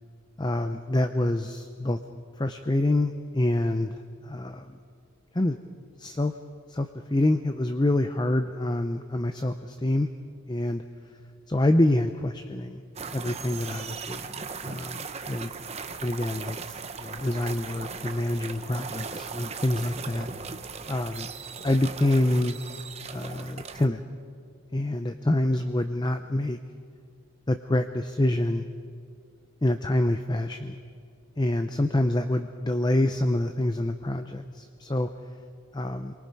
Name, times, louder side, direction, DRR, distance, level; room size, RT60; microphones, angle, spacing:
voice 1, 0.4-2.0 2.4-4.7 5.3-5.6 6.0-6.3 6.7-10.1 10.5-10.8 11.5-12.8 13.1-15.5 16.0-20.3 20.9-21.3 21.6-22.6 23.1-24.1 24.7-26.6 27.5-28.7 29.6-30.8 31.4-35.1 35.7-36.1, left 1 dB, 20° left, 8 dB, 0.6 m, -26 dB
sound 1, 12.9-23.9, right 5 dB, 30° right, 0.8 m, -38 dB
27.5 x 23.5 x 5.4 m, 2.2 s
head